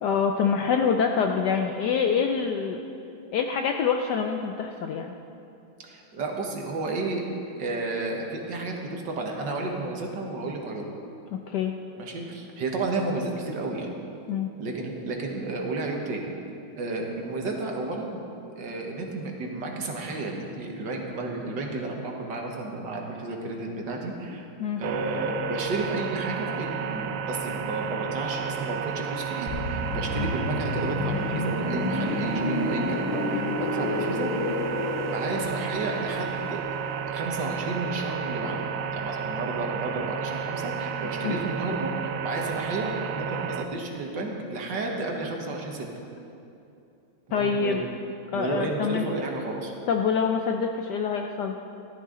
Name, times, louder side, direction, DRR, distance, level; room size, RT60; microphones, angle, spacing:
voice 1, 0.0-2.8 3.3-5.1 11.3-11.7 14.3-14.5 24.3-24.8 30.2-30.3 41.2-41.4 47.3-47.8 48.3-49.1 49.9-51.6, left 6 dB, 70° left, 4 dB, 1.0 m, -26 dB
voice 2, 5.8-10.9 12.0-13.9 14.6-16.3 16.8-18.2 18.6-24.5 24.8-34.3 35.1-36.6 37.1-38.6 38.9-45.9 47.3-47.8 48.3-49.7, right 2 dB, 60° right, 0 dB, 1.9 m, -32 dB
sound 1, 24.8-43.6, right 7 dB, 80° right, 1.4 m, -32 dB
sound 2, 29.5-39.1 39.4-39.6, left 2 dB, 45° left, 1.1 m, -31 dB
15.0 x 12.0 x 3.8 m, 2.7 s
omnidirectional pair, 2.2 m